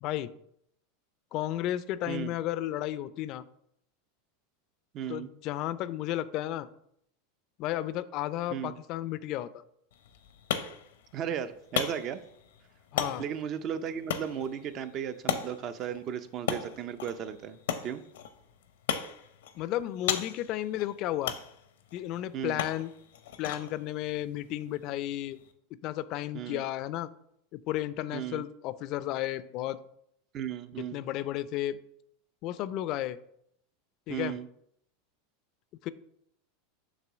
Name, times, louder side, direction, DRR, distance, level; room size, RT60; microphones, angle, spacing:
voice 1, 0.0-0.3 1.3-3.4 5.1-6.7 7.6-9.6 12.9-13.2 19.5-21.3 21.9-22.9 23.4-25.4 25.8-27.1 27.5-29.8 30.9-31.8 32.4-33.2 34.1-34.4 35.8-35.9, left 13 dB, 50° left, 15 dB, 0.4 m, -33 dB
voice 2, 4.9-5.3 8.5-8.8 11.1-12.2 13.2-18.0 22.3-22.6 26.3-26.6 28.1-28.4 30.3-31.0 34.1-34.5, right 9 dB, 40° right, 11 dB, 0.6 m, -35 dB
sound 1, 9.9-25.5, left 8 dB, 85° left, 0.8 m, -38 dB
7.4 x 3.1 x 6.1 m, 0.72 s
supercardioid pair, 125°, 0 cm